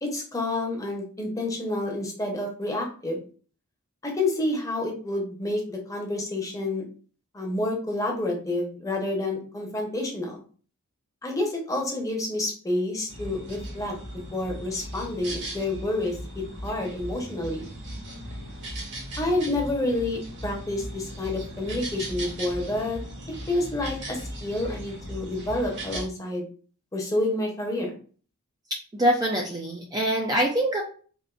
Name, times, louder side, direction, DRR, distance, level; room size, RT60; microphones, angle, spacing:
voice 1, 0.0-3.2 4.0-6.8 7.3-10.4 11.2-13.9 14.3-17.7 19.2-23.0 23.5-26.5 26.9-27.9, left 2 dB, 15° left, 0 dB, 0.7 m, -29 dB
sound 1, 13.1-26.1, right 1 dB, 55° right, 1.3 m, -37 dB
voice 2, 28.9-30.8, right 1 dB, 15° right, 0 dB, 0.4 m, -24 dB
3.6 x 2.4 x 2.3 m, 0.40 s
head